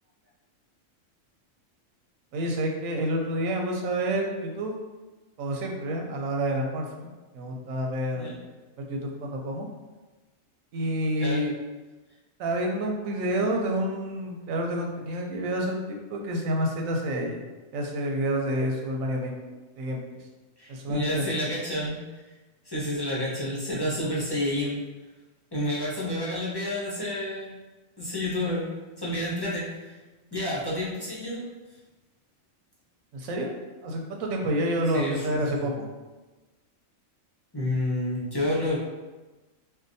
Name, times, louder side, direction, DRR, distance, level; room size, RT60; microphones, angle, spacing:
voice 1, 2.3-4.7 5.4-8.3 8.8-9.7 10.7-11.5 12.4-17.4 17.7-19.3 19.8-20.0 20.7-21.2 33.1-33.5 33.8-35.9, right 1 dB, 85° right, 1 dB, 1.0 m, -28 dB
voice 2, 20.6-22.0 22.6-24.8 25.5-27.5 28.0-28.7 29.0-29.9 30.3-31.5 34.9-35.7 37.5-38.8, left 1 dB, 25° left, -8 dB, 0.6 m, -29 dB
4.7 x 2.2 x 2.6 m, 1.2 s
omnidirectional pair, 1.4 m